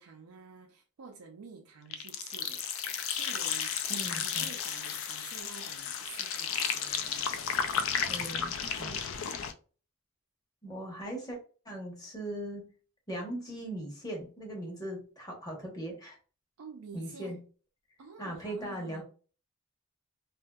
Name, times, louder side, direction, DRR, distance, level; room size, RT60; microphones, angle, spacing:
voice 1, 0.0-2.6 3.1-7.5 8.8-9.1 16.6-17.4 18.0-19.0, right 5 dB, 80° right, 0.4 m, -49 dB
sound 1, 1.9-9.5, left 7 dB, 65° left, 0.3 m, -33 dB
voice 2, 3.9-4.5 8.1-8.9 10.6-11.4 11.6-12.7 13.1-16.2 16.9-17.4 18.2-19.0, right 1 dB, 15° left, 0.9 m, -39 dB
2.8 x 2.5 x 2.2 m
head